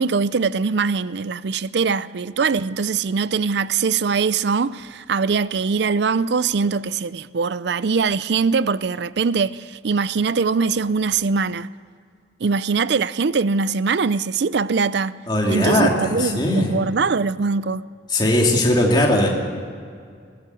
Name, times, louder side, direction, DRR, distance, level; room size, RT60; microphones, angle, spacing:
voice 1, 0.0-11.7 12.4-15.2 15.5-17.8, right 5 dB, 65° right, 0.5 m, -22 dB
voice 2, 15.3-16.7 18.1-19.3, left 1 dB, 25° left, 2.6 m, -19 dB
21.5 x 15.0 x 8.3 m
head